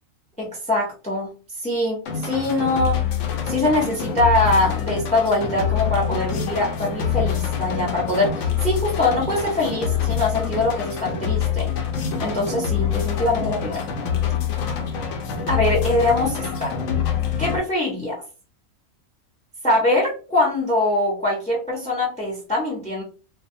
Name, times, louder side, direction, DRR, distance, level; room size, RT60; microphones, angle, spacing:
voice 1, 0.4-1.3 1.6-3.0 3.5-11.7 12.2-13.8 15.5-16.7 17.4-18.2 19.6-23.0, left 2 dB, 10° left, -4 dB, 0.3 m, -23 dB
sound 1, 2.1-17.6, left 8 dB, 70° left, 0.8 m, -25 dB
2.3 x 2.3 x 2.6 m, 0.35 s
omnidirectional pair, 1.5 m